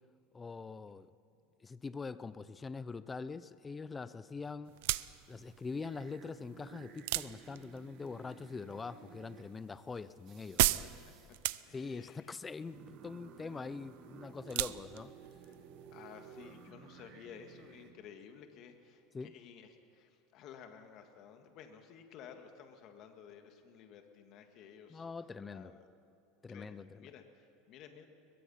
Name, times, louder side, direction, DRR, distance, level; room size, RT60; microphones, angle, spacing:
voice 1, 0.3-1.1 1.6-4.7 5.3-10.8 11.7-15.1 19.1-19.3 24.9-25.7 26.4-27.1, left 4 dB, 15° left, 15 dB, 0.5 m, -43 dB
sound 1, 4.7-16.7, right 18 dB, 70° right, 0.5 m, -38 dB
sound 2, 5.8-9.8 10.3-11.4 12.7-17.9, right 8 dB, 40° right, 1.6 m, -55 dB
voice 2, 11.6-12.3 13.5-13.6 15.2-25.1 25.5-25.9 26.5-28.1, left 7 dB, 45° left, 6 dB, 1.9 m, -54 dB
22.0 x 21.5 x 5.7 m, 2.7 s
supercardioid pair, 155°, 0 cm